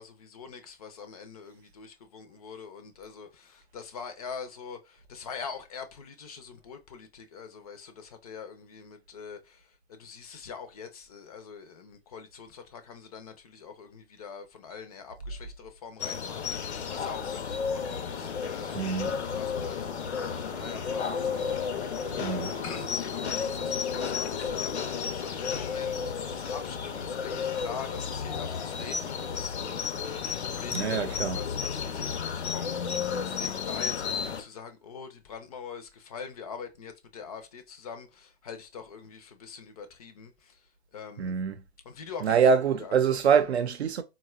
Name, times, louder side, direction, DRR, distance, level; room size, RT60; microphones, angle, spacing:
voice 1, 0.0-41.3 41.9-42.4 42.8-43.0, left 6 dB, 35° left, 0.4 m, -44 dB
sound 1, 16.0-34.4, left 6 dB, 80° left, 0.6 m, -32 dB
voice 2, 18.7-19.1 22.2-22.5 30.7-31.4 41.2-41.6 42.2-44.0, right 6 dB, 75° right, 0.6 m, -25 dB
sound 2, 19.5-30.8, right 3 dB, 30° right, 0.4 m, -50 dB
4.0 x 2.2 x 2.2 m
hypercardioid pair, 130°, 33 cm